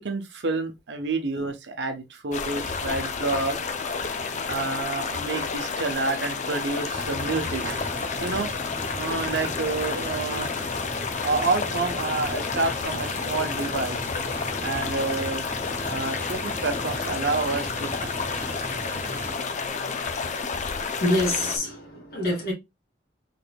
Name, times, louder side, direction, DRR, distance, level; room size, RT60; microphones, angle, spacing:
voice 1, 0.0-3.6 4.3-7.9 8.2-8.5 9.0-10.5 11.2-14.0 14.6-15.4 15.9-17.9, right 3 dB, 70° right, 0.8 m, -29 dB
sound 1, 2.3-21.6, left 5 dB, 45° left, 0.5 m, -30 dB
sound 2, 6.9-19.4, right 1 dB, 10° right, 0.4 m, -38 dB
voice 2, 21.0-22.5, left 1 dB, 60° left, 2.1 m, -25 dB
3.9 x 3.5 x 2.2 m
head